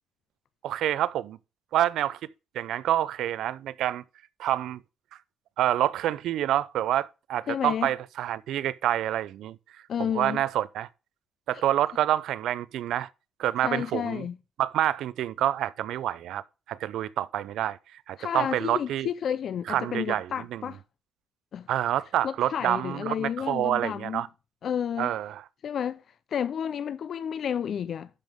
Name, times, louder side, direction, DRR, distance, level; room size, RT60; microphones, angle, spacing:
voice 1, 0.6-1.4 1.7-2.2 2.5-4.0 4.4-4.8 5.6-9.6 10.0-10.9 11.5-13.1 13.4-14.2 14.6-16.4 16.7-19.1 19.7-20.6 21.7-24.3 25.0-25.4, right 12 dB, 70° right, 0.5 m, -27 dB
voice 2, 7.5-7.9 9.9-10.4 13.6-14.4 18.2-20.8 21.5-21.7 22.2-24.2 24.6-25.1 25.6-26.0 26.3-28.1, left 8 dB, 45° left, 0.4 m, -31 dB
12.0 x 5.3 x 3.6 m
cardioid pair, 155°, 0 cm